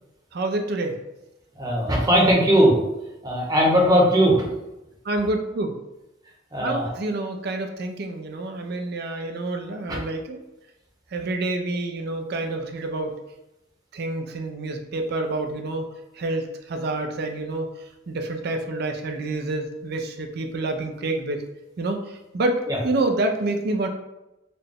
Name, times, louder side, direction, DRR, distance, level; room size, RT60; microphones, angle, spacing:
voice 1, 0.3-1.0 5.1-5.8 6.6-10.4 11.1-13.2 13.9-15.9 16.2-17.7 18.1-21.4 21.8-22.0 22.3-23.9, right 2 dB, 60° right, 5 dB, 0.5 m, -27 dB
voice 2, 1.6-2.7 3.2-4.4 6.5-6.9 9.9-10.0 22.7-22.8, equal, 20° right, -3 dB, 0.9 m, -18 dB
4.0 x 2.2 x 3.4 m, 0.94 s
head